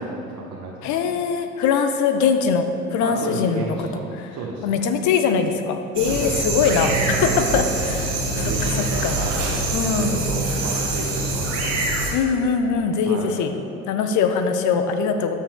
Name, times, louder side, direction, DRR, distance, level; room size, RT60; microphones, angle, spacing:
voice 1, 0.0-1.2 3.0-4.0 4.3-4.8 6.1-6.4 7.3-7.5 8.3-9.5 10.0-11.9 13.0-13.3, right 3 dB, 50° right, -2 dB, 1.1 m, -32 dB
voice 2, 0.8-3.9 4.6-9.2 9.7-10.3 12.1-13.5 13.9-15.4, left 6 dB, 45° left, 7 dB, 0.7 m, -22 dB
sound 1, 6.0-12.1, right 2 dB, 80° right, 1.6 m, -24 dB
13.0 x 7.3 x 2.2 m, 2.8 s
figure-of-eight pair, 65°, 41 cm